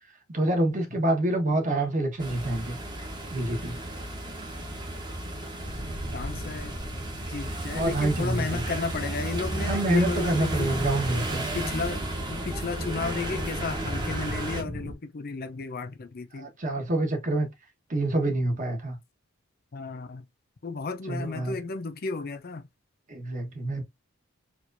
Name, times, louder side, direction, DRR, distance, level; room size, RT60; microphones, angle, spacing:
voice 1, 0.3-2.8 3.3-3.8 7.7-8.6 9.7-11.4 16.4-17.5 17.9-19.0 21.1-21.5 23.1-23.8, right 1 dB, 40° right, 1.2 m, -27 dB
sound 1, 2.2-14.6, right 1 dB, 20° right, 1.0 m, -33 dB
sound 2, 5.6-14.9, equal, 90° right, 1.5 m, -40 dB
voice 2, 6.1-6.8 7.3-10.9 11.5-16.5 19.7-20.2 20.6-22.7, left 4 dB, 50° left, 0.6 m, -33 dB
4.5 x 2.5 x 2.6 m
head